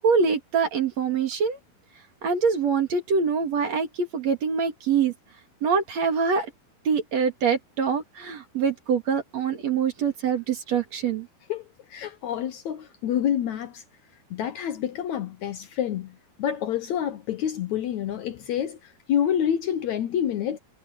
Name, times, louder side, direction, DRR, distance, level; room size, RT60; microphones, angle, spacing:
voice 1, 0.0-1.6 2.2-5.1 5.6-6.5 6.8-11.3, right 6 dB, 50° right, 2.9 m, -24 dB
voice 2, 11.5-13.8 14.3-20.6, left 9 dB, 75° left, 1.7 m, -28 dB
omnidirectional pair, 4.6 m